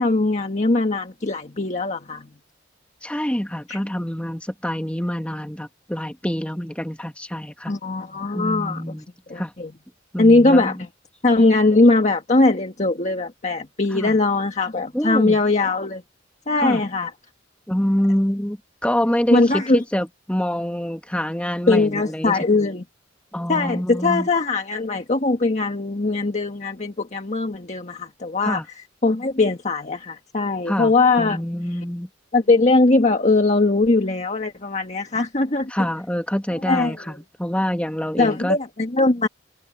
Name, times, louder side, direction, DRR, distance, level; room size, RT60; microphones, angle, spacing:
voice 1, 0.0-2.3 3.7-3.8 7.7-8.8 9.3-9.7 10.2-10.8 11.2-16.0 16.5-17.1 19.3-19.8 21.7-22.8 23.5-28.6 29.0-31.4 32.3-35.7 36.7-36.9 38.2-39.3, left 3 dB, 40° left, 1.5 m, -20 dB
voice 2, 3.0-7.7 8.3-9.0 9.4-9.5 10.1-10.8 13.9-14.2 14.9-15.4 16.5-16.8 17.7-22.4 23.3-24.3 28.4-28.6 30.7-32.1 35.7-38.6, equal, 5° left, 1.6 m, -26 dB
head